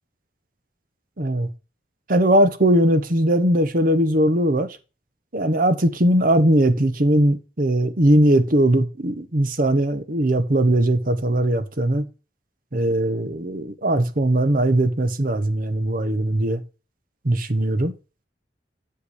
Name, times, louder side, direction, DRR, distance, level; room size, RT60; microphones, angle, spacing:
voice 1, 1.2-1.5 2.1-4.8 5.3-12.1 12.7-16.6 17.2-17.9, right 1 dB, 50° right, 1.0 m, -19 dB
8.0 x 6.8 x 4.9 m
head